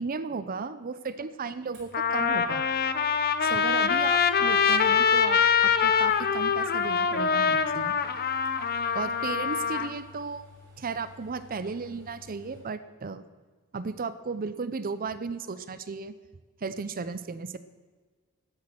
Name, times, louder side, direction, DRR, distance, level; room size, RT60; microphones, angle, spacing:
voice 1, 0.0-2.7 3.4-7.9 8.9-10.4 10.8-13.2 13.7-16.1 16.6-17.6, right 4 dB, 40° right, 13 dB, 0.6 m, -35 dB
Trumpet, 1.2-1.3 1.9-9.9, left 6 dB, 45° left, 0.8 m, -24 dB
sound 1, 1.7-12.6, left 4 dB, 55° right, 4.5 m, -53 dB
13.0 x 10.0 x 7.4 m, 1.4 s
head